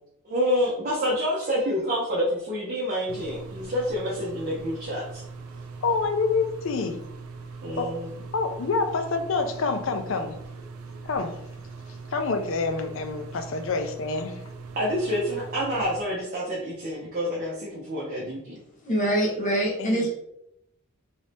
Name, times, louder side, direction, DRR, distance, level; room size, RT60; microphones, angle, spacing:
voice 1, 0.2-5.2 7.6-8.1 14.8-18.6, equal, 40° right, -5 dB, 0.7 m, -28 dB
sound 1, 3.1-16.0, right 4 dB, 75° right, 0.4 m, -41 dB
voice 2, 5.8-7.0 7.7-7.9 8.3-10.4 11.0-11.4 12.1-14.4 19.8-20.1, left 4 dB, 60° left, 7 dB, 0.4 m, -27 dB
voice 3, 18.8-20.1, right 1 dB, 35° left, -3 dB, 1.0 m, -24 dB
3.1 x 2.7 x 3.2 m, 0.79 s
head